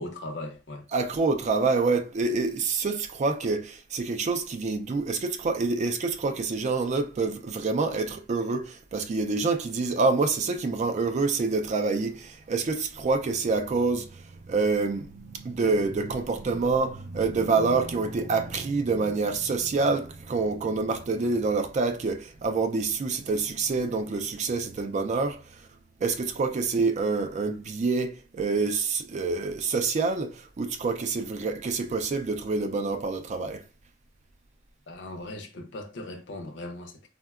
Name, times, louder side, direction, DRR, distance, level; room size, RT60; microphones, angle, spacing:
voice 1, 0.0-0.9 34.9-37.1, left 1 dB, 65° left, 0.6 m, -38 dB
voice 2, 0.9-25.6 26.0-33.6, right 4 dB, 40° right, 0.3 m, -27 dB
3.6 x 2.1 x 2.3 m
head